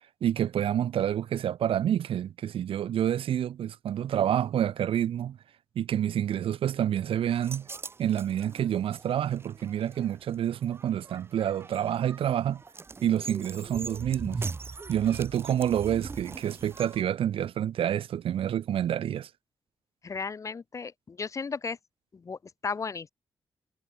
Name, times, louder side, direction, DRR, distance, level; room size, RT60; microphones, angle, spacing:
voice 1, 0.2-5.4 5.7-7.7 8.0-12.6 13.0-14.4 14.9-19.3, right 10 dB, 85° right, 1.1 m, -28 dB
sound 1, 7.3-17.0, right 4 dB, 25° right, 0.7 m, -41 dB
voice 2, 20.0-21.8 22.1-23.1, left 5 dB, 35° left, 1.1 m, -35 dB
wide cardioid pair, 135°, 9 cm